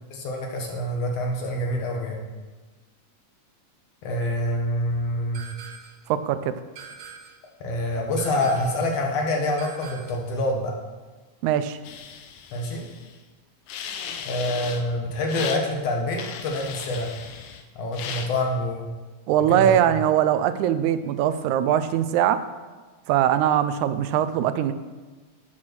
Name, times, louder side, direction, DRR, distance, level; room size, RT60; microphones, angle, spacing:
voice 1, 0.1-2.2 4.0-5.4 7.6-10.7 12.5-12.9 14.2-17.1 17.8-18.9 19.5-19.9, left 1 dB, 65° left, 1 dB, 2.2 m, -26 dB
sound 1, 5.3-6.1 6.8-7.5 8.2-8.9 9.6-10.3, right 6 dB, 70° right, 1.8 m, -43 dB
voice 2, 6.1-6.5 11.4-11.8 19.3-22.4 23.1-24.7, right 10 dB, 85° right, 12 dB, 2.0 m, -21 dB
sound 2, 11.8-13.2 13.7-14.8 15.3-15.6 16.2-17.6 17.9-18.3, left 7 dB, 85° left, 2.0 m, -36 dB
8.7 x 6.2 x 6.1 m, 1.3 s
omnidirectional pair, 3.3 m